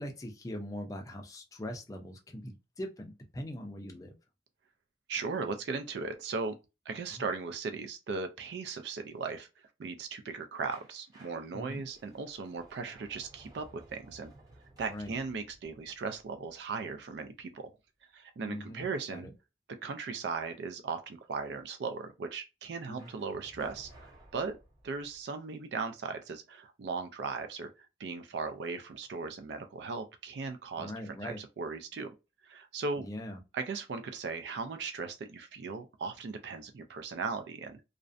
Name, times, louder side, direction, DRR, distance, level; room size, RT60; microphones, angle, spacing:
voice 1, 0.0-4.1 7.1-7.2 11.5-11.8 14.9-15.2 18.4-19.3 22.9-23.1 30.8-31.4 33.0-33.4, left 1 dB, 20° left, 0.4 m, -41 dB
voice 2, 5.1-6.5 6.9-9.5 9.8-14.3 14.8-17.7 18.1-19.3 19.8-24.6 24.8-32.1 32.4-33.1 33.5-37.8, right 4 dB, 75° right, 0.3 m, -37 dB
sound 1, 10.7-17.5 23.0-25.2, right 1 dB, 20° right, 0.7 m, -58 dB
2.5 x 2.0 x 2.4 m
head